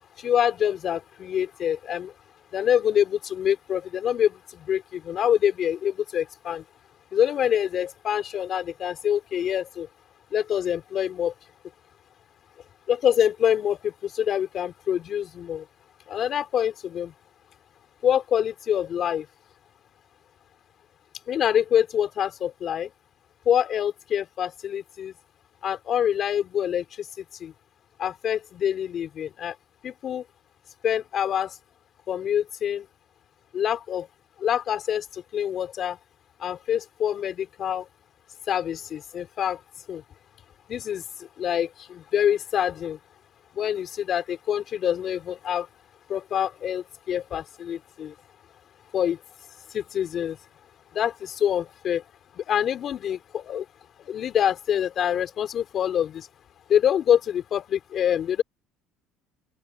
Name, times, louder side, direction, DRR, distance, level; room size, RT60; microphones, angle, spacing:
voice 1, 0.2-2.1 2.5-6.6 7.1-9.9 10.3-11.3 12.9-15.6 16.1-17.1 18.0-19.3 21.3-22.9 23.5-25.1 25.6-27.5 28.0-29.6 29.8-30.2 30.8-31.6 32.1-32.9 33.5-34.1 34.4-36.0 36.4-37.9 38.5-39.6 39.9-40.0 40.7-41.0 41.4-43.0 43.6-45.7 46.1-48.1 48.9-49.2 49.7-50.4 50.9-52.0 52.4-53.7 54.0-56.3 56.7-58.4, left 9 dB, 50° left, 3.4 m, -26 dB
open air
supercardioid pair, 100°, 0 cm